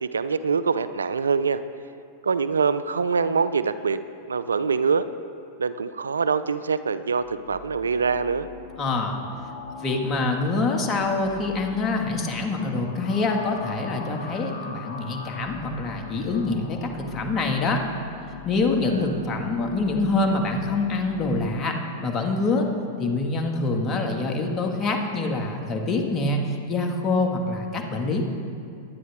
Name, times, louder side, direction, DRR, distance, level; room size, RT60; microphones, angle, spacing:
voice 1, 0.0-1.6 2.2-4.0 4.3-5.1 5.6-8.5 18.7-19.2, right 5 dB, 90° right, 13 dB, 0.4 m, -24 dB
sound 1, 7.2-22.2, left 5 dB, 75° left, 2.2 m, -42 dB
voice 2, 8.8-9.2 9.8-17.8 18.5-22.7 23.0-28.2, left 3 dB, 30° left, 2 dB, 1.9 m, -25 dB
21.5 x 9.5 x 3.6 m, 2.5 s
hypercardioid pair, 100°, 0 cm